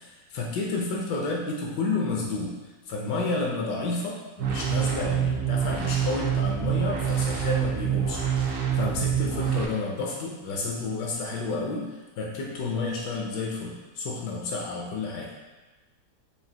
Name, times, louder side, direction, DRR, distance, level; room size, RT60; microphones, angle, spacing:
voice 1, 0.0-2.5 2.9-15.3, left 3 dB, 80° left, -2 dB, 1.2 m, -31 dB
sound 1, 4.4-9.6, right 8 dB, 65° right, 0.8 m, -26 dB
5.0 x 2.7 x 2.8 m, 1.2 s
omnidirectional pair, 1.8 m